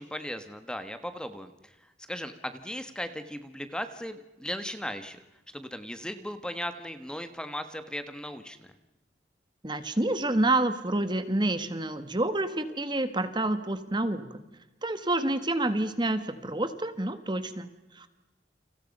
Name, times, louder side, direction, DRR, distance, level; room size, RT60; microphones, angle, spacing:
voice 1, 0.0-5.2 5.5-8.7, equal, 5° left, 9 dB, 1.5 m, -37 dB
voice 2, 9.6-14.3 14.8-17.7 17.9-18.1, right 2 dB, 25° right, 10 dB, 1.5 m, -28 dB
30.0 x 27.5 x 5.4 m, 1.0 s
head